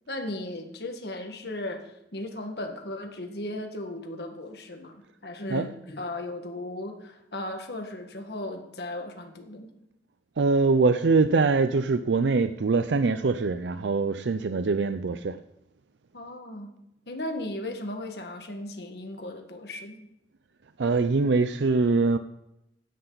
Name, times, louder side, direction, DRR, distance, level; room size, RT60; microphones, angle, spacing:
voice 1, 0.1-9.7 16.1-16.7 17.1-20.1, left 1 dB, 65° left, 1.7 m, -36 dB
voice 2, 10.4-15.4 20.8-22.2, right 4 dB, 85° right, 0.5 m, -23 dB
15.5 x 10.0 x 4.0 m
head